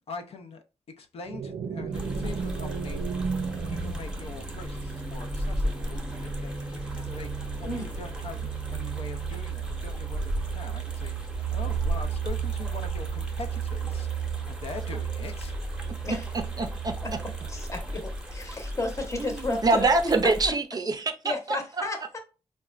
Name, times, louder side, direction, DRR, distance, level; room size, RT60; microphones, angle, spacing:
voice 1, 0.1-0.6 1.0-3.0 3.5-11.1 11.5-15.5, left 4 dB, 65° left, 0.5 m, -43 dB
sound 1, 1.3-4.9, right 5 dB, 90° right, 0.5 m, -34 dB
sound 2, 1.9-20.5, right 4 dB, 5° right, 0.8 m, -33 dB
sound 3, 4.1-12.2 12.5-13.7, left 1 dB, 85° left, 0.8 m, -51 dB
voice 2, 16.6-16.9 19.2-21.6, right 3 dB, 35° right, 0.4 m, -25 dB
voice 3, 17.5-19.9 21.2-22.2, left 2 dB, 25° left, 0.8 m, -32 dB
3.9 x 2.2 x 2.3 m
wide cardioid pair, 120°, 11 cm